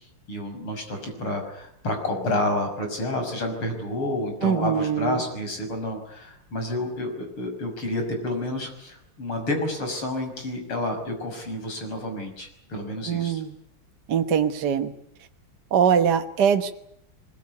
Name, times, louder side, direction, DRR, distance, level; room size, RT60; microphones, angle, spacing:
voice 1, 0.3-13.4, left 1 dB, 75° left, 4 dB, 7.0 m, -29 dB
voice 2, 4.4-5.2 13.1-13.5 14.1-14.9 15.7-16.7, right 8 dB, 55° right, 6 dB, 1.7 m, -22 dB
23.5 x 21.5 x 9.7 m, 0.73 s
omnidirectional pair, 2.4 m